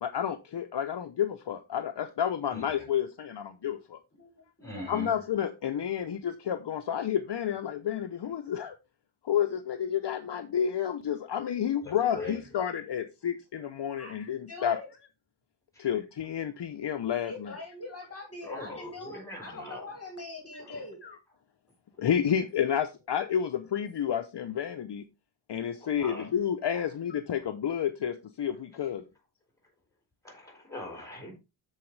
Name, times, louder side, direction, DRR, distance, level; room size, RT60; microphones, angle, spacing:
voice 1, 0.0-4.0 4.9-8.8 9.2-14.8 15.8-17.5 20.7-21.2 22.0-25.0 25.5-29.0, left 9 dB, 60° left, 0.7 m, -30 dB
voice 2, 2.5-2.8 4.6-5.1 11.8-12.4 15.7-15.9 18.4-19.9 20.6-20.8 25.8-26.3 26.7-26.9 30.2-31.3, left 1 dB, 5° left, 3.9 m, -42 dB
voice 3, 4.6-4.9 13.9-14.2 14.5-14.9 17.2-21.0, left 2 dB, 30° left, 2.0 m, -42 dB
13.0 x 4.8 x 3.2 m
wide cardioid pair, 175°, 48 cm